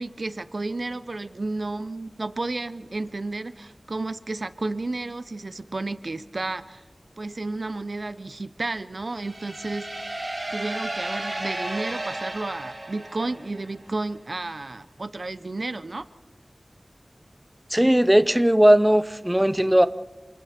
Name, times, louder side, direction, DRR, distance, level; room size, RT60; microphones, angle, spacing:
voice 1, 0.0-6.8 7.2-10.1 10.5-16.1, right 2 dB, 60° right, 13 dB, 0.8 m, -32 dB
sound 1, 9.1-13.8, right 1 dB, 40° right, 5.6 m, -33 dB
voice 2, 17.7-19.9, right 1 dB, 10° right, 12 dB, 0.7 m, -18 dB
28.5 x 28.0 x 4.4 m, 1.2 s
wide cardioid pair, 65°, 0 cm